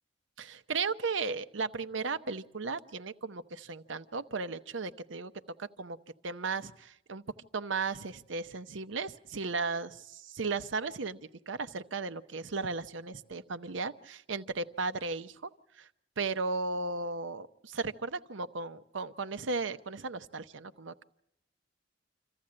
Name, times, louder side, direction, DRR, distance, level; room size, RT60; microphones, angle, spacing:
voice 1, 0.4-5.3 5.6-6.0 6.2-7.2 7.5-11.2 11.5-15.5 15.8-15.9 16.2-21.0, right 4 dB, 85° right, 11 dB, 0.8 m, -35 dB
26.5 x 14.5 x 8.7 m, 0.75 s
head